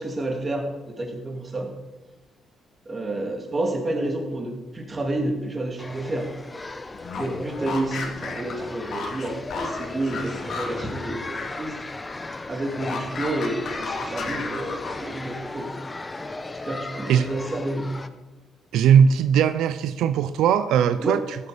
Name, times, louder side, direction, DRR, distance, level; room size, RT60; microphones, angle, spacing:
voice 1, 0.0-1.7 2.9-6.3 7.1-11.8 12.5-15.7 16.6-17.9 21.0-21.3, right 1 dB, 30° right, 3 dB, 2.7 m, -29 dB
sound 1, 5.8-18.1, left 2 dB, 20° left, 0.9 m, -36 dB
sound 2, 6.9-11.6 11.9-15.2, left 4 dB, 60° left, 2.3 m, -35 dB
voice 2, 18.7-21.4, right 8 dB, 85° right, 12 dB, 0.5 m, -19 dB
15.0 x 8.1 x 5.1 m, 1.2 s
cardioid pair, 90°, 0 cm